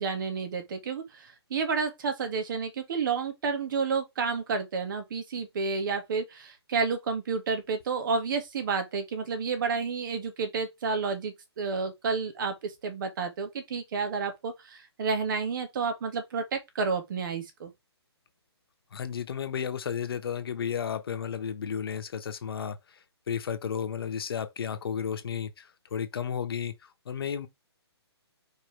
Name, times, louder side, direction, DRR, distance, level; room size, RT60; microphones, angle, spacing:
voice 1, 0.0-17.7, right 5 dB, 50° right, 2.4 m, -30 dB
voice 2, 18.9-22.8 23.3-26.7 27.1-27.5, left 7 dB, 60° left, 1.3 m, -33 dB
5.3 x 5.2 x 3.5 m
hypercardioid pair, 150°, 14 cm